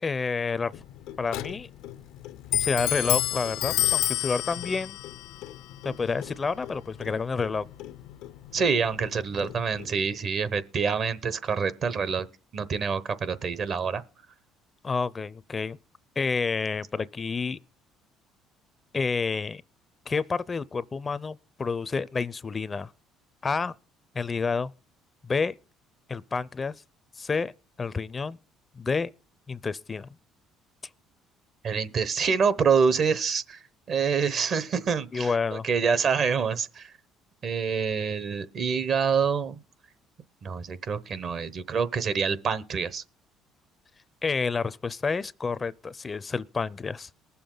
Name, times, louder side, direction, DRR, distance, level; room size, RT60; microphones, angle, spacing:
voice 1, 0.0-0.7 1.2-1.7 2.6-5.0 5.8-7.7 14.8-15.8 16.2-17.6 18.9-19.6 20.1-22.9 23.4-23.7 24.1-24.7 25.3-25.6 26.1-26.7 27.2-27.5 27.8-28.4 28.8-29.1 29.5-30.1 35.1-35.7 44.2-47.1, left 4 dB, 30° left, 0.4 m, -29 dB
Clock, 0.7-10.0, left 13 dB, 80° left, 0.5 m, -32 dB
voice 2, 8.5-12.3 12.5-14.0 31.6-36.9 37.4-39.6 40.4-43.0, right 6 dB, 55° right, 0.9 m, -26 dB
19.5 x 7.0 x 3.9 m
supercardioid pair, 85°, 0 cm